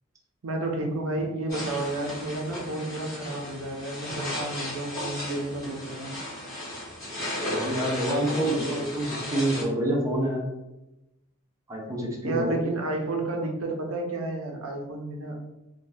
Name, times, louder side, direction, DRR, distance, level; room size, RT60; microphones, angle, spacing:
voice 1, 0.4-6.2 12.2-15.3, right 2 dB, 75° right, 2 dB, 0.5 m, -31 dB
sound 1, 1.5-9.6, left 1 dB, 15° left, 1.4 m, -35 dB
voice 2, 7.5-10.5 11.7-12.6, right 1 dB, 15° right, -3 dB, 0.5 m, -27 dB
2.7 x 2.2 x 3.3 m, 0.97 s
head